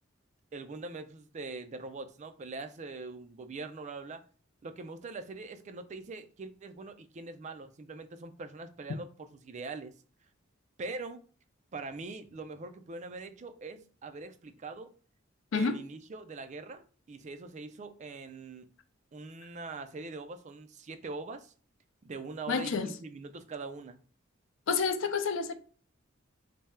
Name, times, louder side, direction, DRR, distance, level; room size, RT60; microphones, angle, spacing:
voice 1, 0.5-4.2 4.6-9.9 10.8-11.2 11.7-14.9 15.5-18.7 19.1-21.5 22.0-24.0, right 3 dB, 35° right, 0.4 m, -42 dB
voice 2, 22.5-22.9 24.7-25.5, left 5 dB, 70° left, 0.5 m, -29 dB
3.4 x 2.2 x 4.2 m
head